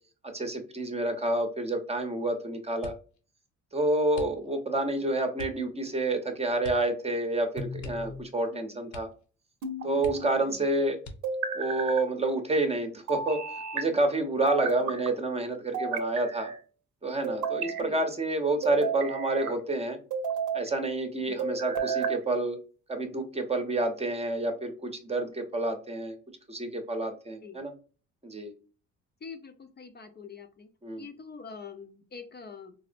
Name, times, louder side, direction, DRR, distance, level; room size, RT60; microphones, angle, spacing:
voice 1, 0.2-2.9 3.7-9.1 9.8-11.0 11.5-13.4 13.7-16.5 17.0-20.0 20.5-22.6 22.9-26.2 26.5-27.7 28.2-28.5 30.8-31.0, right 2 dB, 20° right, 5 dB, 0.8 m, -29 dB
sound 1, 2.8-3.2 4.1-4.7 5.3-5.7 6.6-7.0 7.2-7.3 7.8-8.5 8.9-9.3 9.6-9.7 10.0-10.5 11.0-11.5 12.2-12.9 13.2-13.6, left 1 dB, 70° left, 0.9 m, -45 dB
sound 2, 7.6-8.2 9.6-10.4 11.2-12.0 13.1-13.8 14.5-15.1 15.7-16.6 17.2-17.9 18.6-19.5 20.1-20.7 21.4-22.2, right 5 dB, 75° right, 0.8 m, -32 dB
voice 2, 10.4-10.7 14.8-15.0 17.8-18.1 18.8-18.9 21.3-21.5 27.4-27.6 29.2-30.7 31.0-32.7, left 5 dB, 35° left, 6 dB, 0.6 m, -45 dB
4.2 x 2.0 x 2.4 m, 0.38 s
cardioid pair, 90°, 30 cm